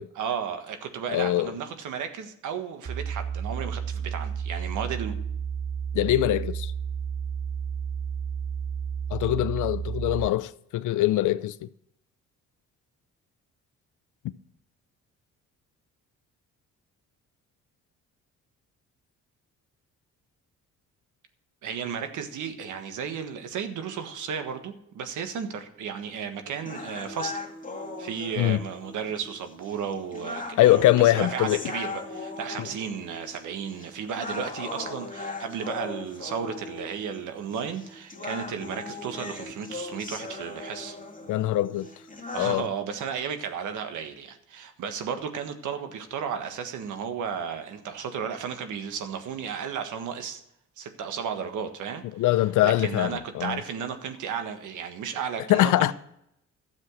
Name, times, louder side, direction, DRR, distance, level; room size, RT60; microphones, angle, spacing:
voice 1, 0.1-5.2 21.6-27.4 28.0-41.0 42.3-50.4 50.8-52.0 52.6-55.9, right 7 dB, 80° right, 1.5 m, -34 dB
voice 2, 1.1-1.5 5.9-6.7 9.1-11.7 28.3-28.6 30.6-31.6 32.6-32.7 41.3-41.9 42.4-42.7 52.2-53.6 55.5-55.9, left 14 dB, 80° left, 0.6 m, -23 dB
sound 1, 2.9-10.3, right 7 dB, 35° right, 0.8 m, -32 dB
sound 2, 26.7-42.7, left 3 dB, 25° left, 2.2 m, -39 dB
12.5 x 7.5 x 6.3 m
cardioid pair, 90°, 30 cm